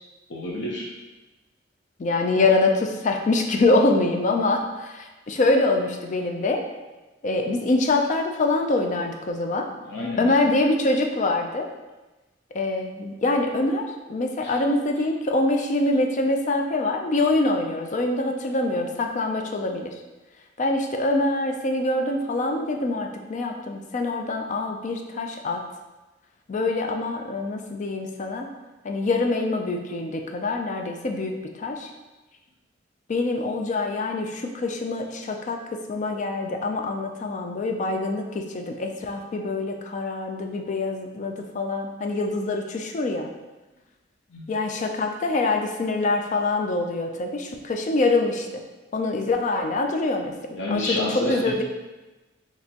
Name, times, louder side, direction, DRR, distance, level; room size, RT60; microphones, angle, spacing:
voice 1, 0.3-0.9 9.8-10.3 14.4-14.6 44.3-44.4 50.5-51.6, left 2 dB, 70° left, -2 dB, 0.8 m, -29 dB
voice 2, 2.0-6.6 7.2-9.7 10.2-11.7 12.5-19.9 20.6-25.6 26.5-28.5 28.8-31.3 31.6-31.9 33.1-35.6 35.9-43.3 44.5-48.6 48.9-50.3 50.7-51.6, left 2 dB, 40° left, 4 dB, 0.4 m, -25 dB
4.2 x 3.0 x 2.8 m, 1.1 s
head